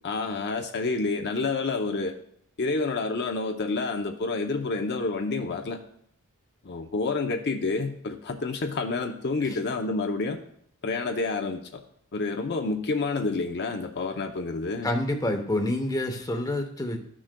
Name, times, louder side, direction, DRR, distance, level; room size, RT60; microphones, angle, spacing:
voice 1, 0.0-2.1 2.6-5.8 6.6-10.4 10.8-11.8 12.1-14.9, left 3 dB, 50° left, 4 dB, 0.6 m, -29 dB
voice 2, 14.8-17.0, left 1 dB, 15° left, 4 dB, 0.8 m, -27 dB
12.5 x 6.2 x 2.2 m, 0.67 s
head